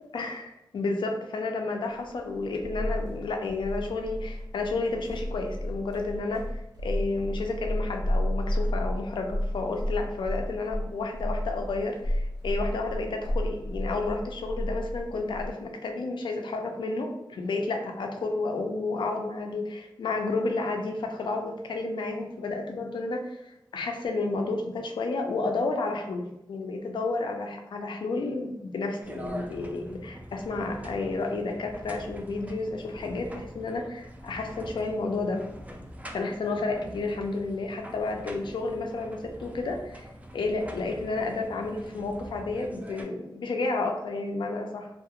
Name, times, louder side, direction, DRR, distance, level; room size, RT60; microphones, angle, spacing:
voice 1, 0.1-35.5 36.1-40.1 40.3-44.9, left 3 dB, 85° left, 3 dB, 0.4 m, -31 dB
sound 1, 2.0-15.5, equal, 60° right, 0.6 m, -32 dB
sound 2, 29.0-43.0, equal, 20° right, 0.3 m, -44 dB
2.3 x 2.0 x 2.8 m, 0.87 s
wide cardioid pair, 95°, 8 cm